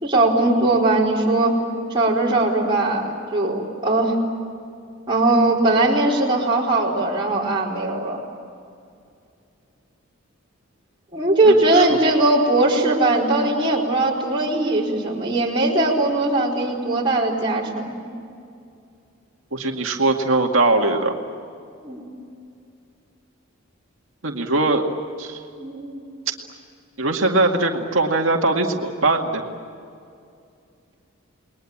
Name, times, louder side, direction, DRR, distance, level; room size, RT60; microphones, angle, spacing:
voice 1, 0.0-1.6 1.9-4.2 5.1-8.2 11.1-18.0 21.8-22.0 25.6-26.0, right 2 dB, 25° right, -5 dB, 4.2 m, -20 dB
voice 2, 11.5-12.0 19.5-21.1 24.2-24.8 25.2-25.4 27.0-29.4, right 2 dB, 70° right, 2 dB, 2.2 m, -21 dB
29.5 x 21.5 x 8.7 m, 2.4 s
head